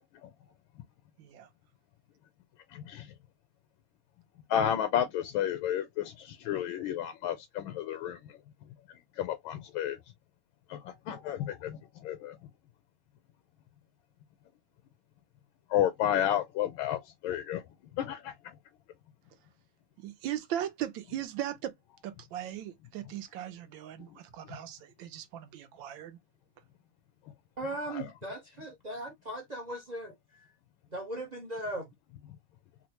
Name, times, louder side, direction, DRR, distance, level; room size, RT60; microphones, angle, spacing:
voice 1, 1.2-1.5 20.0-21.7 22.0-26.2, right 11 dB, 75° right, 1.4 m, -38 dB
voice 2, 2.7-3.1 4.5-8.4 9.1-10.0 10.7-12.4 15.7-17.6 17.9-18.6 24.0-24.2 24.4-24.6 27.8-28.1, left 10 dB, 85° left, 1.4 m, -32 dB
voice 3, 27.6-30.1 30.9-31.9, right 1 dB, 55° right, 0.4 m, -38 dB
4.4 x 2.1 x 2.9 m
omnidirectional pair, 2.2 m